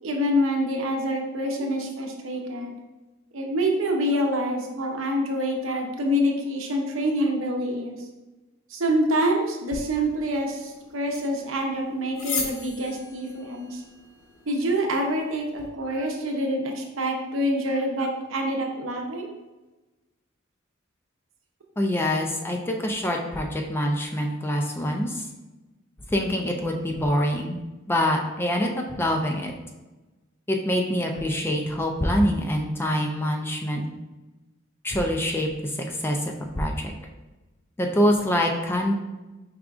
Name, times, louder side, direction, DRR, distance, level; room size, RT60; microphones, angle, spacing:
voice 1, 0.0-2.8 3.3-8.0 8.7-13.8 14.5-19.3, equal, 70° right, 2 dB, 0.7 m, -26 dB
sound 1, 9.7-15.7, left 4 dB, 85° left, 0.7 m, -38 dB
voice 2, 21.8-25.3 26.1-27.6 27.9-29.5 30.5-33.8 34.8-36.2 36.6-36.9 37.8-38.9, equal, 10° left, 2 dB, 0.3 m, -25 dB
4.9 x 3.5 x 2.4 m, 1.1 s
head